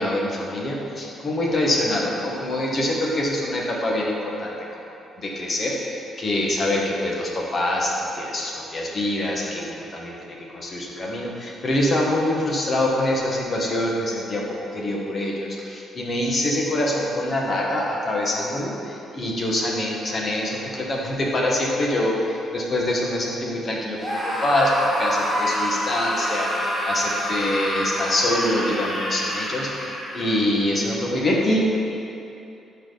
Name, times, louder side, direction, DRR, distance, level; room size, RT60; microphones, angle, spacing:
voice 1, 0.0-4.5 5.2-10.1 10.5-14.4 14.7-29.9 30.1-31.6, left 1 dB, 40° left, -3 dB, 1.7 m, -25 dB
Screaming, 24.0-30.4, equal, 10° left, 1.9 m, -27 dB
12.5 x 4.6 x 4.2 m, 2.7 s
cardioid pair, 90°, 0 cm